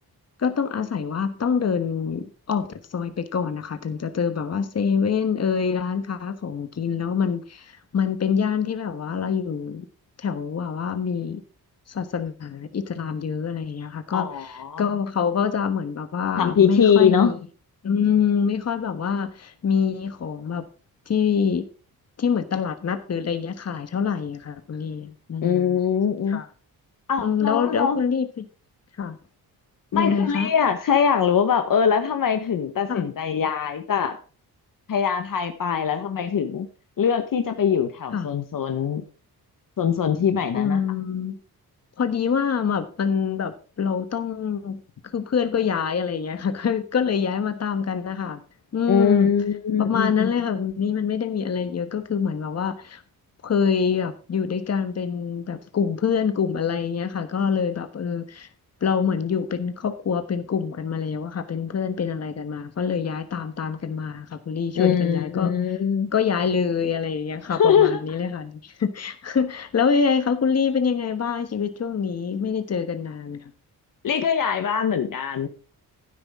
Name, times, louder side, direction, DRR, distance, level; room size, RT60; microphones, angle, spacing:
voice 1, 0.4-9.8 10.2-11.4 11.9-17.4 17.8-20.6 21.1-21.7 22.2-25.8 26.3-26.4 27.2-28.4 29.0-29.2 29.9-30.5 32.9-33.1 38.1-38.3 40.5-41.4 42.0-44.8 45.1-48.4 48.7-49.3 49.8-53.0 53.4-58.5 58.8-65.5 66.1-73.5, left 6 dB, 40° left, 10 dB, 1.3 m, -25 dB
voice 2, 14.1-14.8 16.4-17.3 25.4-26.4 27.1-28.0 29.9-34.2 34.9-36.7 37.0-39.0 39.8-40.8 48.9-50.3 64.7-66.1 67.5-68.0 74.0-75.5, left 7 dB, 60° left, 9 dB, 1.2 m, -22 dB
12.5 x 9.8 x 3.6 m, 0.37 s
cardioid pair, 110°, 38 cm